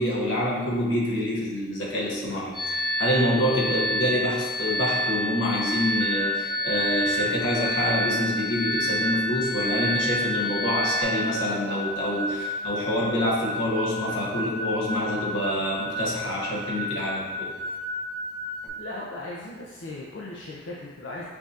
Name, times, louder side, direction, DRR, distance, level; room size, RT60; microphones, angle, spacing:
voice 1, 0.0-17.5, left 1 dB, 90° left, -4 dB, 1.0 m, -27 dB
sound 1, 2.5-11.0, equal, 5° right, 1.2 m, -28 dB
sound 2, 6.0-18.7, left 1 dB, 55° right, 0.4 m, -33 dB
voice 2, 18.8-21.3, left 2 dB, 70° left, -5 dB, 0.5 m, -37 dB
5.9 x 2.7 x 2.4 m, 1.4 s
head